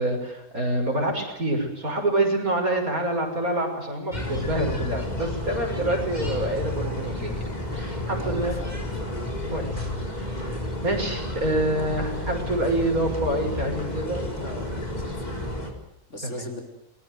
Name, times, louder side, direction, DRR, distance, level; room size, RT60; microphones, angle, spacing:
voice 1, 0.0-7.3 7.7-8.6 9.5-9.7 10.2-10.4 10.8-14.3 16.2-16.5, right 1 dB, 90° right, 3 dB, 6.7 m, -26 dB
sound 1, 4.1-15.7, left 1 dB, 30° left, 4.7 m, -31 dB
voice 2, 8.2-9.1 14.3-15.6 16.1-16.6, left 1 dB, 55° left, 3 dB, 5.5 m, -39 dB
28.0 x 22.0 x 8.0 m, 0.83 s
omnidirectional pair, 1.5 m